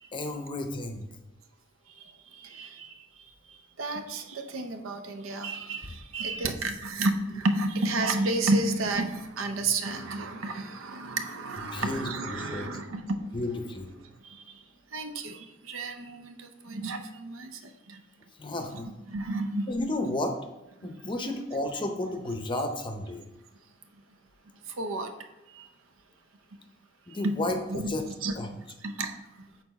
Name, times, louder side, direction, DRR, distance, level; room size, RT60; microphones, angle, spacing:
voice 1, 0.1-1.1 11.7-12.7 13.3-13.9 18.4-18.9 19.7-20.3 20.8-23.2 27.1-28.0 28.4-28.5, left 1 dB, 25° left, 5 dB, 0.6 m, -32 dB
voice 2, 1.9-13.4 14.2-14.6 14.9-18.0 19.1-19.7 24.6-25.1 25.5-25.7 27.1-27.4 27.7-27.9 28.2-28.3 28.8-29.5, right 2 dB, 80° right, 7 dB, 0.7 m, -32 dB
6.8 x 4.1 x 4.1 m, 0.99 s
head